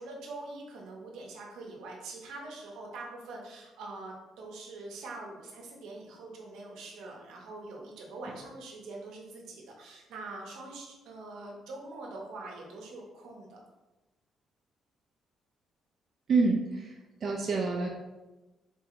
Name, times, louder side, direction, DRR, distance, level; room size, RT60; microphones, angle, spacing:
voice 1, 0.0-13.6, right 2 dB, 85° right, -1 dB, 0.8 m, -44 dB
voice 2, 16.3-16.9 17.2-17.9, right 4 dB, 50° right, -1 dB, 0.5 m, -27 dB
4.1 x 2.3 x 2.9 m, 1.1 s
cardioid pair, 90°, 0 cm